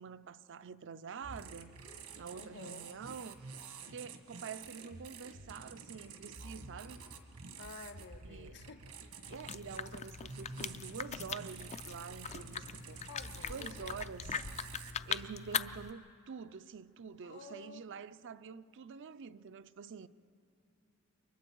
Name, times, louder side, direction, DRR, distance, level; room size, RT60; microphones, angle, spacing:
voice 1, 0.0-1.8 2.2-3.4 3.9-7.1 8.3-8.6 9.3-13.0 13.5-14.3 15.1-20.1, right 6 dB, 60° right, 0.5 m, -47 dB
sound 1, 1.2-14.9, right 4 dB, 85° right, 1.6 m, -50 dB
voice 2, 2.3-2.9 7.6-8.8 13.1-13.9 14.3-14.4 17.2-17.9, left 3 dB, 55° left, 1.0 m, -51 dB
sound 2, 9.2-15.9, left 7 dB, 30° left, 0.4 m, -41 dB
28.5 x 23.5 x 4.6 m
head